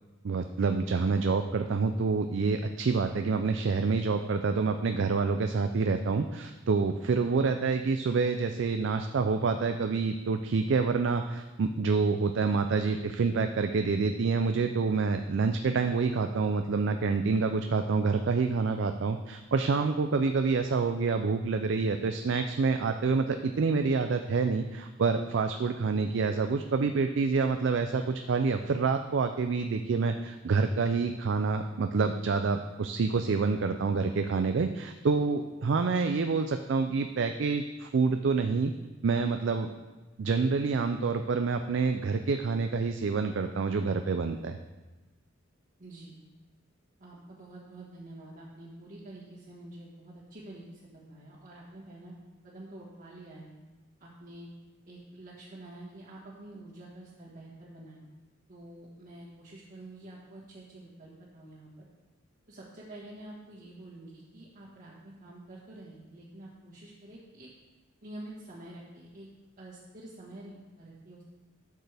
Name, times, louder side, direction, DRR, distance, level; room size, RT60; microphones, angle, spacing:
voice 1, 0.2-38.7 39.0-39.7 40.2-44.6, right 4 dB, 65° right, 7 dB, 0.4 m, -27 dB
voice 2, 45.8-46.2 47.0-52.2 52.4-53.6 54.0-54.5 54.9-58.0 58.5-61.7 62.5-67.5 68.0-69.3 69.6-71.2, right 1 dB, 45° right, -9 dB, 1.6 m, -47 dB
12.0 x 6.6 x 3.4 m, 1.2 s
head